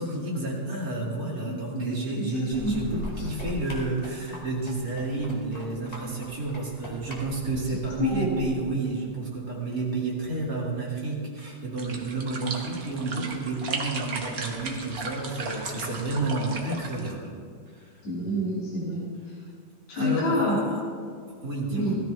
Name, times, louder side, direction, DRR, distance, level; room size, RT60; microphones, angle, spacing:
voice 1, 0.0-17.3 17.7-17.9 19.9-20.4 21.4-21.9, right 2 dB, 30° right, -4 dB, 2.3 m, -30 dB
voice 2, 1.4-2.8 3.2-3.3 7.7-8.4 18.0-19.1 19.9-20.6 21.7-21.9, left 1 dB, 65° left, -7 dB, 4.1 m, -28 dB
sound 1, 2.5-8.5, equal, 15° left, 1.4 m, -40 dB
sound 2, 11.8-17.1, right 3 dB, 50° right, 1.0 m, -36 dB
17.5 x 13.5 x 3.4 m, 2.1 s
omnidirectional pair, 3.5 m